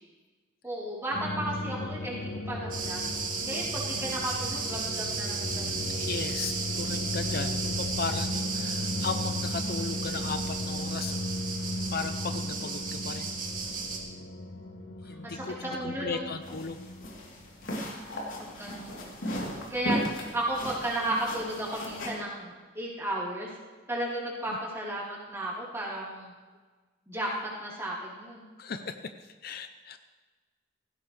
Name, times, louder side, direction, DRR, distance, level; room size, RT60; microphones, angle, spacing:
voice 1, 0.6-6.1 14.6-14.9 15.2-16.3 18.4-18.9 19.3-19.4 19.7-20.1 20.3-23.5 23.9-26.3 27.1-27.3 27.6-28.4, right 1 dB, 15° right, -6 dB, 3.9 m, -34 dB
sound 1, 1.1-17.5, left 1 dB, 70° left, 1.3 m, -36 dB
sound 2, 2.7-14.0, right 4 dB, 45° right, 2.2 m, -34 dB
voice 2, 5.9-11.2 11.9-13.3 15.1-15.6 15.8-16.8 24.5-24.6 28.6-29.1 29.4-30.0, left 5 dB, 50° left, 9 dB, 0.6 m, -36 dB
sound 3, 16.4-22.1, equal, 90° left, 3.4 m, -36 dB
17.5 x 15.5 x 3.4 m, 1.4 s
head